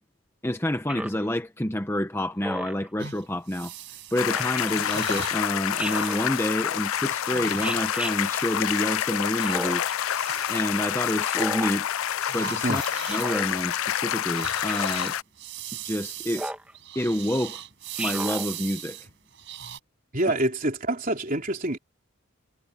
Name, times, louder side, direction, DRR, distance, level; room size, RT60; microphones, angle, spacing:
voice 1, 0.4-3.7 4.1-9.8 10.5-11.9 12.3-12.8 13.1-15.2 15.8-16.4 16.9-17.6 18.0-19.1, left 1 dB, 10° left, 0.8 m, -28 dB
Speech synthesizer, 0.9-1.3 2.4-2.9 4.3-4.6 5.8-6.2 7.6-8.1 9.4-10.0 11.2-11.8 13.0-13.5 14.7-15.0 16.3-16.7 18.0-18.5, right 1 dB, 5° right, 1.8 m, -34 dB
sound 1, 3.0-8.9 9.3-11.7 12.0-19.8, right 9 dB, 55° right, 7.7 m, -40 dB
sound 2, 4.2-15.2, left 10 dB, 65° left, 0.4 m, -28 dB
voice 2, 20.1-21.8, right 1 dB, 40° right, 3.8 m, -26 dB
head